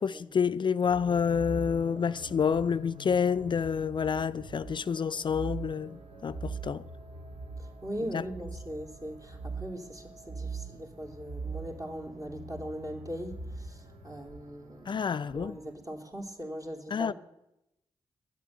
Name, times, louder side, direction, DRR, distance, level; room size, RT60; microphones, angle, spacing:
voice 1, 0.0-6.8 8.1-8.2 14.9-15.6 16.9-17.1, left 6 dB, 50° left, 0.4 m, -28 dB
sound 1, 0.8-15.7, right 3 dB, 75° right, 1.6 m, -43 dB
voice 2, 7.6-15.0 15.3-17.1, equal, 35° right, 3.2 m, -40 dB
11.5 x 8.3 x 9.3 m
supercardioid pair, 40°, 10 cm